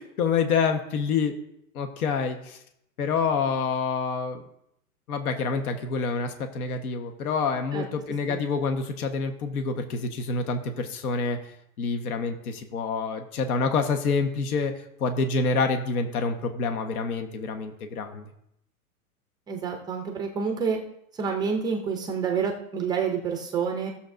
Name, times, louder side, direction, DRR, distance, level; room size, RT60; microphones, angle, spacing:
voice 1, 0.0-1.3 1.7-2.6 3.0-4.4 5.1-11.4 11.8-14.7 15.0-18.2, left 4 dB, 75° left, 6 dB, 1.3 m, -27 dB
voice 2, 19.5-20.8 21.1-23.9, right 6 dB, 10° right, 3 dB, 0.4 m, -28 dB
16.5 x 7.0 x 2.6 m, 0.77 s
supercardioid pair, 145°, 44 cm